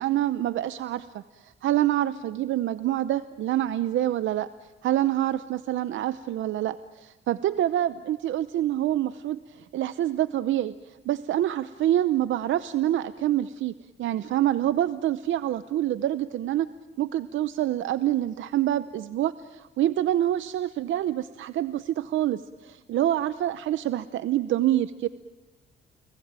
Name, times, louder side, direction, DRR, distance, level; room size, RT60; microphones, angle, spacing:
voice 1, 0.0-4.5 4.8-13.7 14.0-16.7 17.0-25.1, right 12 dB, 75° right, 13 dB, 0.8 m, -26 dB
30.0 x 19.5 x 8.9 m, 1.2 s
cardioid pair, 90°, 20 cm